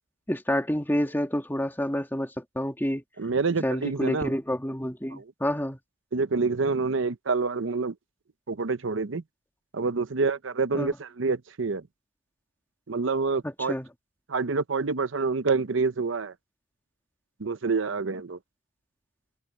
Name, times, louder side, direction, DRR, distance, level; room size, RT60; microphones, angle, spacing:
voice 1, 0.3-3.0 3.6-5.8 10.7-11.0 13.4-13.9, equal, 10° left, 2.7 m, -28 dB
voice 2, 3.2-4.3 5.2-5.3 6.1-7.9 8.5-9.2 9.7-11.8 12.9-13.7 14.3-16.3 17.4-18.4, right 4 dB, 85° right, 0.8 m, -27 dB
head